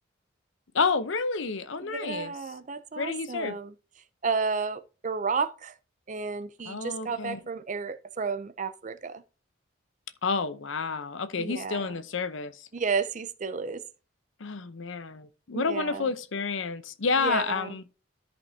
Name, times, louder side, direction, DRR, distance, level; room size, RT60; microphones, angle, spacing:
voice 1, 0.7-2.3 3.0-3.6 6.7-7.4 10.2-12.7 14.4-17.8, left 4 dB, 70° left, 0.7 m, -30 dB
voice 2, 1.8-3.7 4.2-5.8 6.1-9.2 11.4-11.8 12.7-13.8 15.5-16.0 17.2-17.8, right 5 dB, 35° right, 0.5 m, -32 dB
13.5 x 5.3 x 2.7 m
head